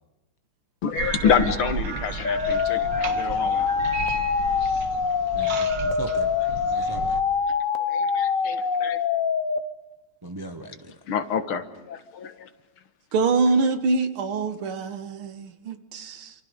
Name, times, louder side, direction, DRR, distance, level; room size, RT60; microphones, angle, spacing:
voice 1, 0.8-3.7 4.1-4.2 7.8-9.0 11.1-12.5, left 7 dB, 75° left, 9 dB, 2.2 m, -27 dB
sound 1, 1.0-7.2, right 5 dB, 55° right, 2.1 m, -33 dB
sound 2, 2.2-9.6, left 6 dB, 45° left, 1.2 m, -24 dB
voice 2, 5.3-6.3 6.7-7.2 10.2-10.9, right 1 dB, 30° right, 5 dB, 0.4 m, -38 dB
voice 3, 13.1-16.3, right 3 dB, 75° right, 9 dB, 2.2 m, -24 dB
28.0 x 27.0 x 5.2 m, 1.0 s
omnidirectional pair, 2.4 m